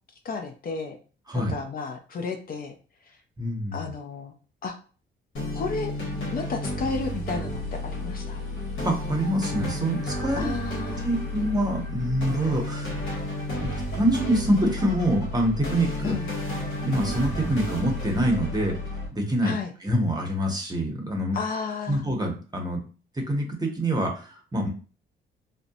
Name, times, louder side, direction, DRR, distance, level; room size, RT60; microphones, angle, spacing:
voice 1, 0.2-1.0 1.3-2.8 3.1-3.2 3.7-4.3 4.6-4.7 5.5-5.9 6.3-8.4 10.3-11.1 16.0-16.3 19.4-19.7 21.3-22.0, left 4 dB, 45° left, 4 dB, 0.5 m, -32 dB
voice 2, 1.3-1.6 3.4-3.9 8.8-10.5 11.0-13.0 13.6-16.1 16.8-18.8 19.2-19.5 19.8-21.4 21.9-22.8 23.1-24.7, right 1 dB, 20° right, 2 dB, 0.7 m, -25 dB
sound 1, 5.4-19.1, left 1 dB, 80° left, 1.0 m, -32 dB
2.6 x 2.1 x 2.6 m, 0.37 s
cardioid pair, 90°, 20 cm